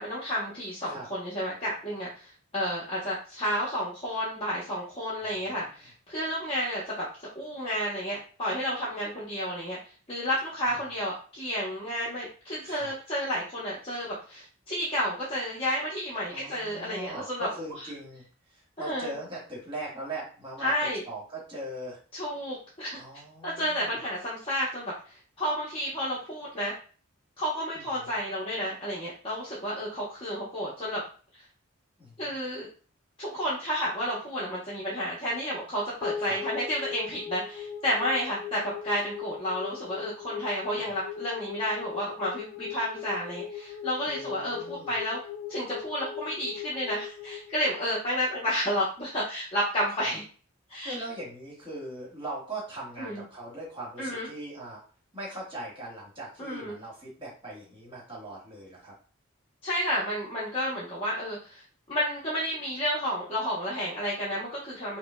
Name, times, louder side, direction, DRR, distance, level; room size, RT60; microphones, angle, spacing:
voice 1, 0.0-7.1 7.3-9.8 10.1-17.5 17.8-17.9 18.8-19.1 20.6-21.0 22.1-23.0 23.4-26.7 27.4-31.0 32.2-32.7 33.2-45.2 45.5-50.2 50.7-50.9 53.0-53.2 54.0-54.3 56.4-56.8 59.6-61.6 61.9-65.0, equal, 25° left, -8 dB, 0.9 m, -31 dB
voice 2, 16.3-18.2 18.5-20.7 21.1-22.0 22.9-24.0 27.7-28.1 32.0-32.1 36.2-36.4 40.8-40.9 44.0-44.9 50.0-50.1 50.8-54.8 55.1-58.9, right 1 dB, 20° right, -5 dB, 1.6 m, -40 dB
sound 1, 36.0-48.5, left 8 dB, 50° left, 0.6 m, -40 dB
5.0 x 2.2 x 2.2 m, 0.39 s
head